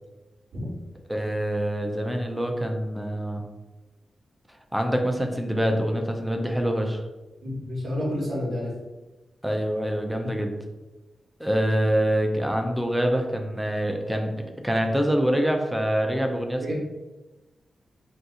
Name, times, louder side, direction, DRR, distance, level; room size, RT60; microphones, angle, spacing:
voice 1, 1.1-3.4 4.7-7.0 9.4-10.5 11.4-16.7, equal, 5° right, 3 dB, 0.3 m, -25 dB
voice 2, 7.4-8.7 10.2-10.3 16.6-16.7, left 1 dB, 50° right, -4 dB, 0.9 m, -29 dB
2.7 x 2.3 x 3.6 m, 1.1 s
wide cardioid pair, 155°, 0 cm